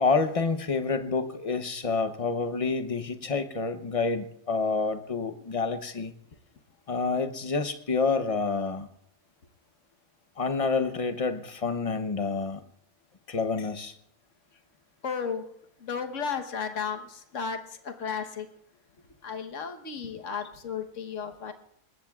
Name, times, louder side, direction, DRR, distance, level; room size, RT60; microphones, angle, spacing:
voice 1, 0.0-6.1 6.9-8.9 10.4-12.6 13.3-13.9, left 4 dB, 30° left, 9 dB, 0.7 m, -28 dB
voice 2, 15.0-15.4 15.8-17.6 17.8-18.5 19.2-21.5, left 6 dB, 60° left, 6 dB, 1.4 m, -34 dB
25.0 x 20.5 x 2.4 m, 0.74 s
omnidirectional pair, 1.5 m